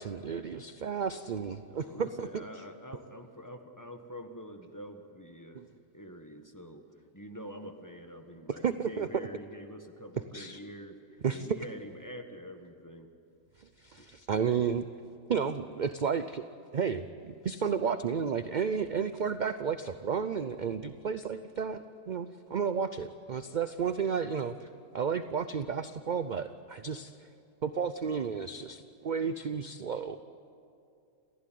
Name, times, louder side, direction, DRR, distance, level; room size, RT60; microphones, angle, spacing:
voice 1, 0.0-2.4 5.5-5.7 8.5-9.3 10.3-10.6 11.2-11.5 13.6-14.9 15.3-16.4 16.7-27.3 27.6-30.2, right 6 dB, 50° right, 11 dB, 0.6 m, -32 dB
voice 2, 1.7-5.7 5.9-6.8 7.1-13.1 14.0-14.1, equal, 15° left, 5 dB, 1.5 m, -46 dB
29.0 x 15.5 x 9.4 m, 2.5 s
omnidirectional pair, 1.4 m